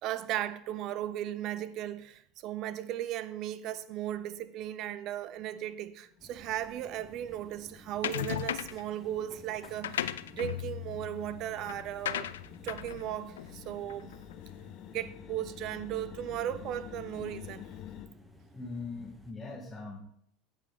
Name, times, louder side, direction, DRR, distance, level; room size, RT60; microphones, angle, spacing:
voice 1, 0.0-12.3 12.6-14.1 14.9-17.6, right 12 dB, 45° right, 0.5 m, -36 dB
sound 1, 4.8-4.9 5.2-18.1, left 10 dB, 45° left, 0.8 m, -50 dB
sound 2, 6.2-19.3, equal, 10° right, 1.3 m, -55 dB
sound 3, 8.0-8.9 9.6-14.3, left 11 dB, 65° left, 0.4 m, -37 dB
voice 2, 18.5-20.0, left 3 dB, 15° left, 1.6 m, -41 dB
15.5 x 5.2 x 3.4 m
figure-of-eight pair, 75°, 0 cm